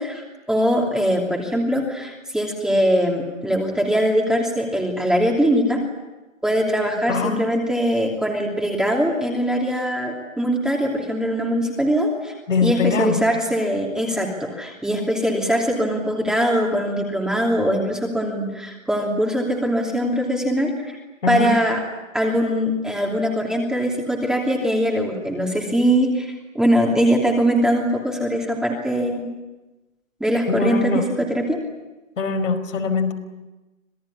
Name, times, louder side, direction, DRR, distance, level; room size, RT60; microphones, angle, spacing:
voice 1, 0.0-5.8 6.4-12.3 12.6-21.0 21.3-21.8 22.1-29.3 30.2-31.6, equal, ahead, 0 dB, 2.9 m, -22 dB
voice 2, 7.1-7.4 12.5-13.2 21.2-21.5 30.5-31.1 32.2-33.1, left 4 dB, 70° left, 4 dB, 5.2 m, -22 dB
27.0 x 18.0 x 9.9 m, 1.1 s
hypercardioid pair, 140°, 40 cm